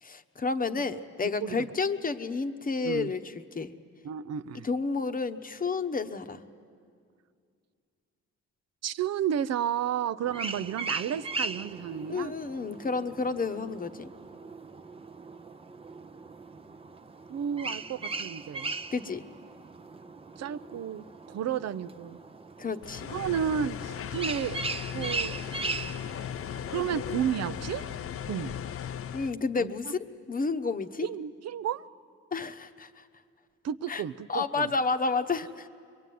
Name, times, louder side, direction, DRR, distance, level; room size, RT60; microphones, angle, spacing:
voice 1, 0.0-3.7 4.6-6.4 12.1-14.1 18.9-19.3 22.6-23.1 29.1-31.1 32.3-33.0 33.9-34.0 34.3-35.7, left 4 dB, 30° left, 9 dB, 1.0 m, -31 dB
voice 2, 0.7-1.0 1.4-1.6 2.8-3.1 4.0-4.7 8.8-12.3 17.3-18.8 20.4-22.2 23.1-24.6 24.9-25.4 26.7-27.8 28.3-28.6 29.6-29.7 31.0-31.9 33.6-34.7, right 9 dB, 55° right, 14 dB, 0.7 m, -32 dB
sound 1, 10.2-28.0, right 3 dB, 20° right, 0.8 m, -39 dB
sound 2, 22.8-29.3, left 9 dB, 50° left, 0.6 m, -37 dB
23.5 x 23.0 x 9.4 m, 2.3 s
cardioid pair, 90°, 30 cm